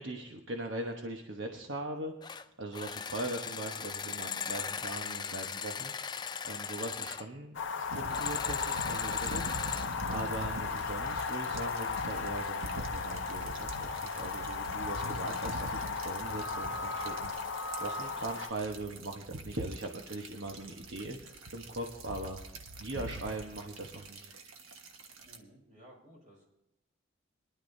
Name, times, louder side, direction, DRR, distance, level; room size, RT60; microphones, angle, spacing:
voice 1, 0.0-22.4 22.8-24.3, right 2 dB, 65° right, 2 dB, 1.1 m, -40 dB
sound 1, 2.2-2.4 2.7-7.2 8.1-9.9, left 7 dB, 20° left, 0.3 m, -38 dB
sound 2, 7.5-18.5, left 5 dB, 60° left, 0.6 m, -36 dB
sound 3, 7.9-25.4, right 2 dB, 90° right, 1.4 m, -44 dB
voice 2, 25.2-26.4, right 1 dB, 40° right, -2 dB, 5.2 m, -57 dB
22.5 x 11.5 x 2.7 m, 0.88 s
head